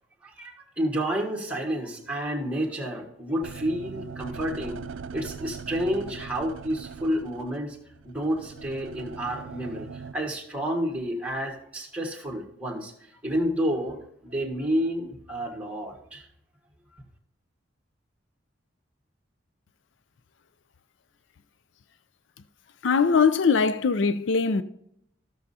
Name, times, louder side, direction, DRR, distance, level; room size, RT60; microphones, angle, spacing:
voice 1, 0.2-4.8 5.1-7.8 8.0-12.9 13.2-14.0 14.2-16.3, equal, 5° right, 1.6 m, -30 dB
sound 1, 3.4-10.1, right 5 dB, 90° right, 0.4 m, -40 dB
voice 2, 22.8-24.6, left 5 dB, 75° left, 0.5 m, -21 dB
15.5 x 6.4 x 2.7 m
head